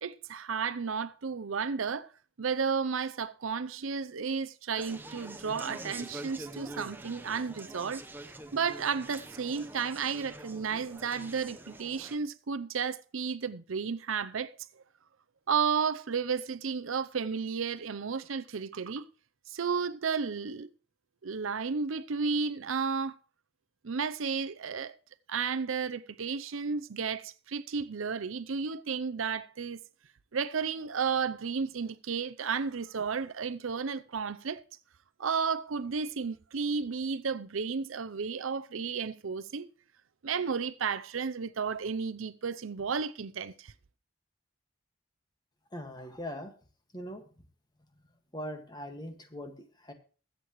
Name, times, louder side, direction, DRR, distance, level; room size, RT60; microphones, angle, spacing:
voice 1, 0.0-2.1 2.4-8.0 8.5-14.6 15.5-19.0 19.5-20.7 21.2-23.2 23.8-24.9 25.3-29.8 30.3-34.6 35.2-39.7 40.2-43.7, right 5 dB, 80° right, 0.6 m, -33 dB
Conversation, 4.8-12.2, right 2 dB, 10° right, 0.9 m, -45 dB
voice 2, 45.7-46.5 46.9-47.2 48.3-49.9, equal, 20° left, 1.8 m, -41 dB
21.5 x 8.3 x 3.1 m
head